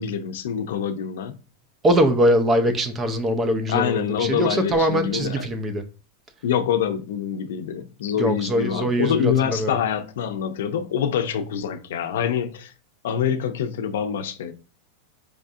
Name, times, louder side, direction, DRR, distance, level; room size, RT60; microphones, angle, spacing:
voice 1, 0.0-1.4 3.7-5.5 6.4-12.7 13.0-14.5, left 8 dB, 80° left, 0.5 m, -25 dB
voice 2, 1.8-5.8 8.2-9.8, equal, 15° right, 0.4 m, -22 dB
4.8 x 2.4 x 2.6 m
supercardioid pair, 175°, 0 cm